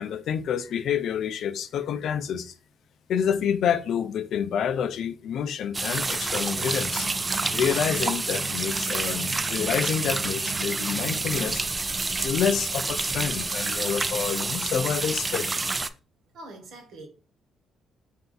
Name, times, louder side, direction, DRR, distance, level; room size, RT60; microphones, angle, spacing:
voice 1, 0.0-2.5 3.1-7.1 7.5-11.6 12.2-15.5, left 8 dB, 70° left, 0.4 m, -28 dB
sound 1, 5.7-15.9, right 3 dB, 25° right, 0.3 m, -28 dB
sound 2, 6.5-11.8, right 3 dB, 55° right, 0.9 m, -40 dB
sound 3, 7.6-11.6 11.9-12.0 12.6-12.7, equal, ahead, 0.7 m, -50 dB
voice 2, 16.3-17.1, right 2 dB, 75° right, 1.3 m, -43 dB
3.4 x 2.7 x 3.8 m
cardioid pair, 90°, 0 cm